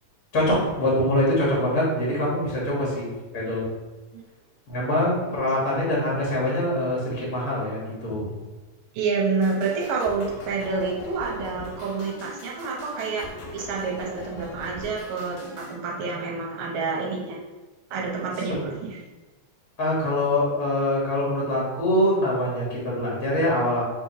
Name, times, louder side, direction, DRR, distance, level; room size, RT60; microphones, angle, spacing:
voice 1, 0.3-3.1 3.3-3.6 4.7-8.3 18.5-18.7 19.8-23.8, left 1 dB, 65° left, -5 dB, 0.8 m, -24 dB
voice 2, 8.9-13.3 13.5-17.4 17.9-19.0, right 4 dB, 75° right, -2 dB, 2.0 m, -28 dB
sound 1, 9.4-15.8, left 3 dB, 85° left, 2.4 m, -41 dB
6.5 x 3.0 x 2.7 m, 1.2 s
omnidirectional pair, 3.6 m